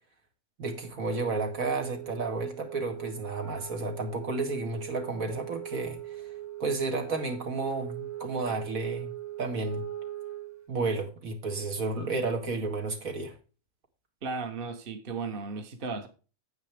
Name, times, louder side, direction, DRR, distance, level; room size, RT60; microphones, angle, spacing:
voice 1, 0.6-6.2 6.6-9.1 9.4-9.8 10.7-13.3, right 3 dB, 80° right, 2.3 m, -32 dB
Wind instrument woodwind instrument, 0.9-10.7, right 13 dB, 15° right, 0.9 m, -41 dB
voice 2, 14.2-16.1, right 4 dB, 45° right, 1.3 m, -35 dB
9.7 x 8.2 x 3.4 m
omnidirectional pair, 1.4 m